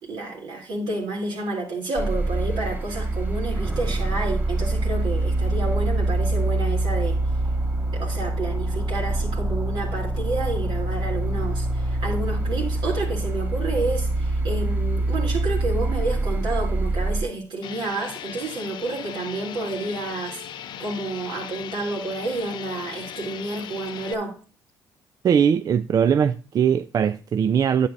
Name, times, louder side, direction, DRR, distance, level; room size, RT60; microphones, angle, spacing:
voice 1, 0.0-7.2 7.9-24.4, right 2 dB, 75° right, 3.2 m, -30 dB
sound 1, 2.0-17.2, right 2 dB, 20° right, 1.5 m, -25 dB
sound 2, 17.6-24.1, left 10 dB, 70° left, 0.6 m, -38 dB
voice 2, 25.2-27.9, right 7 dB, 50° right, 0.4 m, -20 dB
10.0 x 8.1 x 2.6 m
supercardioid pair, 65°, 8 cm